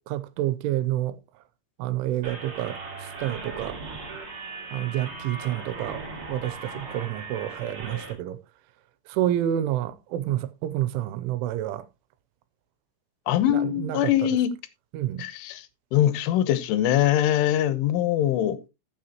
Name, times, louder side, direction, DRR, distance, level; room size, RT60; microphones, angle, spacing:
voice 1, 0.1-1.2 1.8-4.0 4.7-8.4 9.1-11.9 13.5-14.1 14.9-15.3, right 12 dB, 85° right, 3.2 m, -29 dB
sound 1, 2.2-8.1, right 3 dB, 35° right, 2.8 m, -38 dB
voice 2, 13.3-14.5 15.2-15.6 15.9-18.7, left 11 dB, 85° left, 3.5 m, -22 dB
14.5 x 7.3 x 2.9 m
omnidirectional pair, 5.4 m